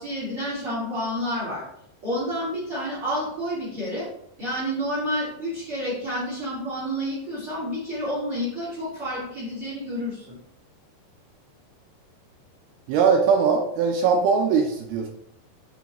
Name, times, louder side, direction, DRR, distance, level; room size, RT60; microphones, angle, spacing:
voice 1, 0.0-1.6 2.0-4.1 4.4-10.4, equal, 40° right, -7 dB, 2.5 m, -29 dB
voice 2, 12.9-15.1, right 5 dB, 80° right, 3 dB, 2.3 m, -20 dB
7.0 x 5.1 x 3.0 m, 0.74 s
omnidirectional pair, 4.9 m